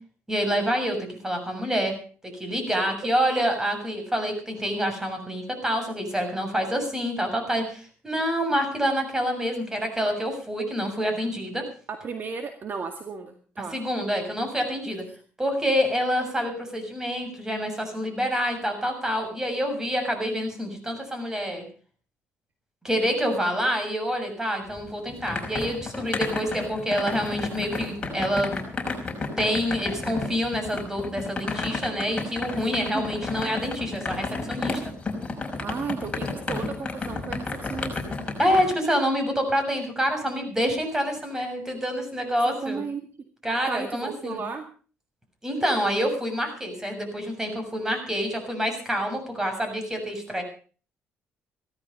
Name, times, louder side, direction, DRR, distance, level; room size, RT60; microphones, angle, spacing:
voice 1, 0.3-2.0 2.2-11.6 13.7-15.1 15.4-21.7 22.8-28.6 29.4-34.9 38.4-42.8 43.4-44.4 45.4-50.4, equal, 10° right, 5 dB, 6.7 m, -27 dB
voice 2, 11.9-13.8 14.9-15.0 32.8-33.1 35.5-38.2 42.3-43.1 43.6-44.7, right 5 dB, 45° right, 6 dB, 2.0 m, -34 dB
sound 1, 24.7-38.7, left 3 dB, 25° left, 5.6 m, -32 dB
16.5 x 13.5 x 5.3 m, 0.40 s
cardioid pair, 100°, 5 cm